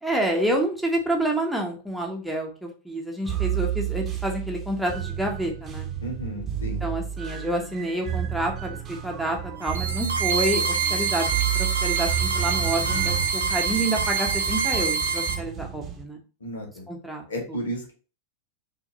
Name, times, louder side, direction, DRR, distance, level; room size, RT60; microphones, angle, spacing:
voice 1, 0.0-5.9 6.8-11.3 11.5-16.2 16.9-17.2 17.5-17.6, right 1 dB, ahead, 1 dB, 1.1 m, -28 dB
sound 1, 3.3-16.0, right 11 dB, 25° right, 1.0 m, -31 dB
voice 2, 6.0-6.8 16.4-16.8 17.3-17.9, equal, 70° left, 1 dB, 1.5 m, -33 dB
sound 2, 9.6-15.3, right 5 dB, 70° right, 1.0 m, -26 dB
6.3 x 2.8 x 2.8 m, 0.35 s
figure-of-eight pair, 90°, 0 cm